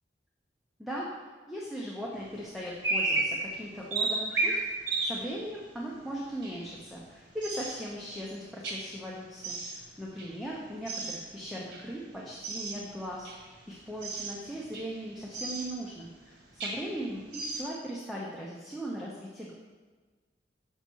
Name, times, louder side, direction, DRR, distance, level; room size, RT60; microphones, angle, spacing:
voice 1, 0.8-13.3 13.7-19.5, equal, ahead, -5 dB, 0.7 m, -39 dB
sound 1, 2.2-2.3 2.6-5.5 6.1-6.8 7.4-8.0 8.6-8.9 9.4-9.9 10.2-11.3 11.7-12.0 12.4-12.9 13.2-13.5 14.0-14.4 14.7-15.0 15.3-15.8 16.4-17.0 17.3-17.6, right 3 dB, 85° right, 1.4 m, -33 dB
6.9 x 5.7 x 4.5 m, 1.4 s
head